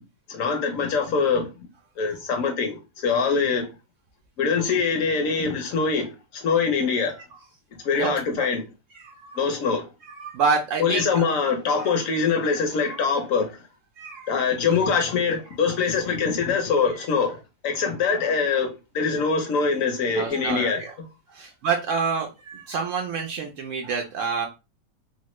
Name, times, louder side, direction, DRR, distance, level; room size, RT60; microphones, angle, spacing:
voice 1, 0.3-1.5 2.0-3.7 4.4-7.1 7.8-8.7 9.4-9.9 10.8-13.6 14.3-17.4 17.6-20.8, left 5 dB, 60° left, 0.9 m, -23 dB
voice 2, 7.9-8.5 8.9-9.4 10.1-11.3 11.8-11.9 12.8-13.1 14.0-14.9 19.2-19.3 20.2-20.9 21.3-24.5, right 5 dB, 90° right, 0.6 m, -28 dB
3.1 x 2.1 x 3.0 m
omnidirectional pair, 1.9 m